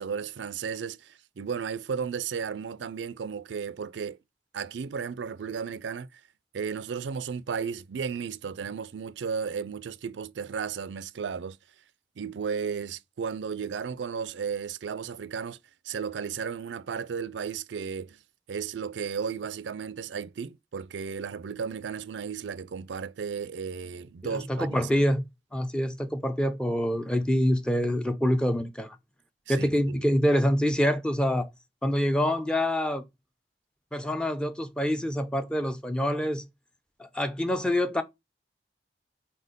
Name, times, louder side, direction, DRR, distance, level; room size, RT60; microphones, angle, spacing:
voice 1, 0.0-4.2 4.5-6.2 6.5-11.6 12.2-15.6 15.8-18.2 18.5-24.9 29.5-30.0, right 6 dB, 85° right, 0.4 m, -34 dB
voice 2, 24.3-25.2 25.5-29.0 29.5-31.5 31.8-33.0 33.9-36.4 37.0-38.0, equal, 5° left, 0.6 m, -26 dB
4.4 x 4.3 x 5.0 m
head